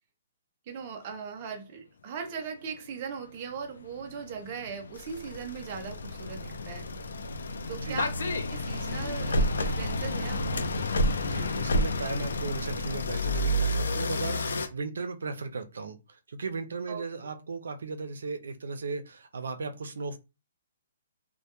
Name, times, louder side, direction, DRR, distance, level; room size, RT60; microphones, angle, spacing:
voice 1, 0.7-6.9 7.7-10.7 16.9-17.0, right 6 dB, 25° right, 0.4 m, -39 dB
sound 1, 2.9-3.2 3.8-14.7, left 1 dB, 90° left, 0.4 m, -30 dB
voice 2, 7.7-8.1 11.2-20.2, right 4 dB, 90° right, 0.4 m, -36 dB
2.1 x 2.1 x 2.8 m
hypercardioid pair, 175°, 0 cm